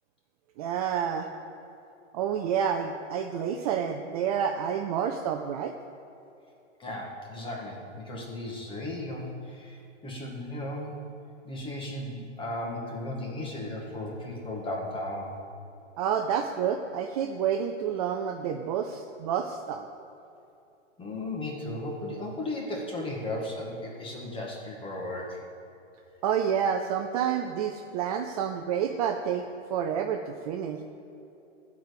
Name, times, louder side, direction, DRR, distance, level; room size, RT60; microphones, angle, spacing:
voice 1, 0.6-1.3 2.1-5.7 16.0-19.9 26.2-30.8, right 8 dB, 30° right, 5 dB, 0.5 m, -29 dB
voice 2, 6.8-11.0 11.4-15.3 21.0-25.4, left 1 dB, 15° left, -1 dB, 1.9 m, -35 dB
14.0 x 4.8 x 8.5 m, 2.8 s
hypercardioid pair, 135°, 38 cm